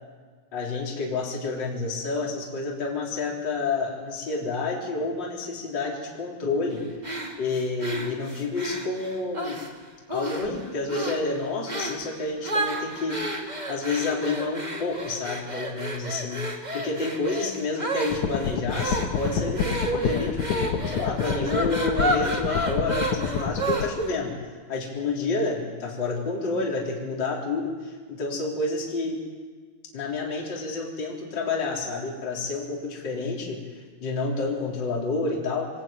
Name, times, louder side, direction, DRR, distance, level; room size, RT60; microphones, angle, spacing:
voice 1, 0.5-6.8 7.4-9.6 10.1-13.2 13.7-24.3 24.7-29.2 29.9-33.6 34.0-35.7, left 3 dB, 25° left, -2 dB, 4.0 m, -29 dB
sound 1, 7.0-9.7 10.1-10.6 10.9-11.3 11.7-12.0 12.4-24.1, right 1 dB, 75° right, 0.4 m, -31 dB
sound 2, 18.1-23.8, left 7 dB, 70° left, 1.8 m, -28 dB
24.0 x 19.0 x 9.1 m, 1.5 s
omnidirectional pair, 5.6 m